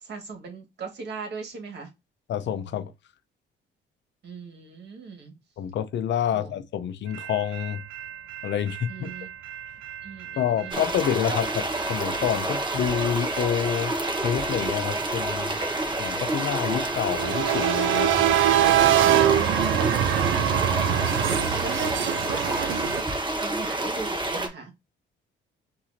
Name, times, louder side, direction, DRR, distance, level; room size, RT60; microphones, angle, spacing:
voice 1, 0.0-1.9 4.2-5.3 6.3-6.5 8.9-9.3 10.0-10.8 11.3-11.4 19.3-24.7, right 4 dB, 60° right, 1.7 m, -39 dB
voice 2, 2.3-2.9 5.6-7.8 8.4-9.1 10.4-11.5 11.9-15.6 16.0-18.3, left 9 dB, 65° left, 0.6 m, -28 dB
sound 1, 7.1-23.0, right 11 dB, 80° right, 0.5 m, -26 dB
sound 2, 10.7-24.5, right 1 dB, 25° right, 1.2 m, -29 dB
5.7 x 2.7 x 2.7 m
cardioid pair, 90°, 20 cm